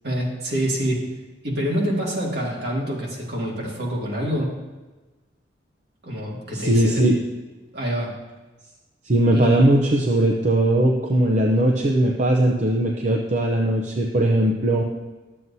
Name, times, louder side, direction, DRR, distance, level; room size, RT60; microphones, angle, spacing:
voice 1, 0.0-1.0 1.4-4.5 6.0-7.0 7.7-8.1 9.3-9.6, equal, 65° right, -3 dB, 2.2 m, -26 dB
voice 2, 6.5-7.2 9.0-14.8, right 1 dB, 40° right, 0 dB, 0.6 m, -19 dB
12.5 x 7.6 x 2.7 m, 1.2 s
head